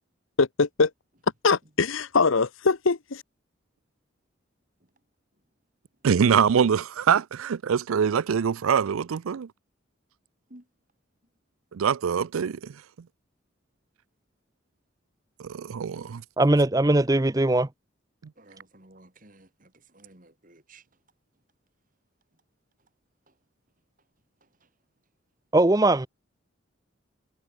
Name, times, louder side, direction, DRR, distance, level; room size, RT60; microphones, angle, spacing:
voice 1, 0.4-0.9 1.4-3.2, left 4 dB, 80° left, 0.9 m, -22 dB
voice 2, 6.0-9.5 11.7-12.7 15.4-16.2, right 7 dB, 90° right, 0.4 m, -24 dB
voice 3, 16.4-17.7 25.5-26.1, right 2 dB, 15° right, 0.6 m, -20 dB
voice 4, 18.4-20.9 23.3-23.4 24.4-24.7, right 2 dB, 40° right, 2.8 m, -54 dB
head